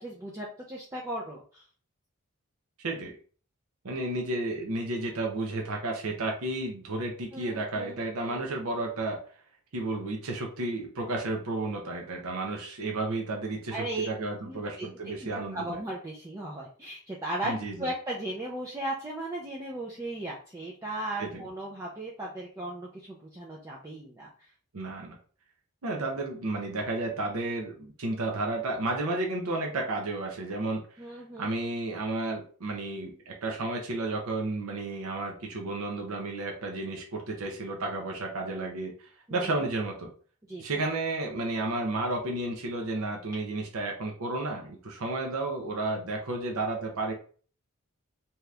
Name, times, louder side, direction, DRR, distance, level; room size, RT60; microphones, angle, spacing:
voice 1, 0.0-1.6 7.3-8.5 13.7-14.1 14.5-24.3 31.0-31.5 39.3-39.5 40.5-40.9, right 1 dB, 15° right, -4 dB, 0.4 m, -37 dB
voice 2, 2.8-3.1 3.8-9.2 9.7-15.8 17.4-17.9 21.2-21.4 24.7-25.2 25.8-30.8 31.1-38.9 39.3-40.1 40.6-47.1, right 2 dB, 85° right, 1 dB, 0.6 m, -32 dB
2.8 x 2.4 x 3.2 m, 0.43 s
head